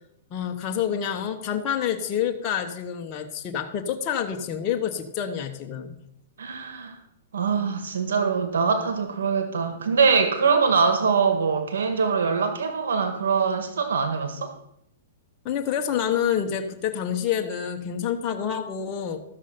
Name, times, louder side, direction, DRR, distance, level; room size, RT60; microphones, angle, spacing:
voice 1, 0.3-6.0 15.4-19.2, left 9 dB, 35° left, 3 dB, 1.2 m, -27 dB
voice 2, 6.4-7.0 7.3-14.5, right 5 dB, 80° right, 7 dB, 1.6 m, -23 dB
13.5 x 7.1 x 5.8 m, 0.75 s
hypercardioid pair, 135°, 0 cm